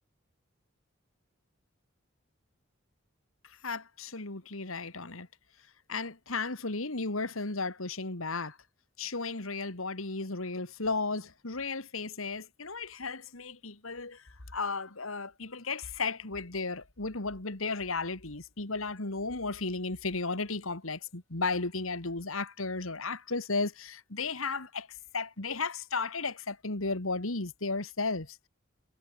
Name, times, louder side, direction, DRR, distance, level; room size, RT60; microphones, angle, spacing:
voice 1, 3.6-5.3 5.9-8.6 9.0-14.2 14.5-24.9 25.1-28.5, left 3 dB, 85° left, 2.4 m, -34 dB
head